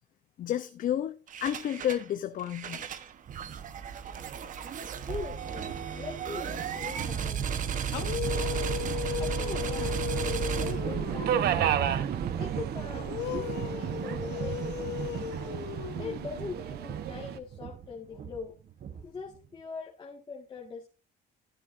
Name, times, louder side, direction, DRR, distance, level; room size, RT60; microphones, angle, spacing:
voice 1, 0.4-2.8, left 11 dB, 55° left, 0.7 m, -31 dB
SS's pulse cannon audio, 1.3-2.1 2.4-19.3, right 8 dB, 50° right, 1.2 m, -35 dB
voice 2, 4.9-7.5 7.9-8.7 9.2-11.8 12.4-15.3 16.0-18.5 18.9-20.9, left 4 dB, 25° left, 1.8 m, -42 dB
sound 1, 7.8-11.6 12.9-16.5, left 13 dB, 90° left, 1.1 m, -36 dB
Subway metro underground, 8.2-17.4, right 10 dB, 70° right, 1.0 m, -34 dB
13.5 x 10.0 x 2.6 m
cardioid pair, 110°, 17 cm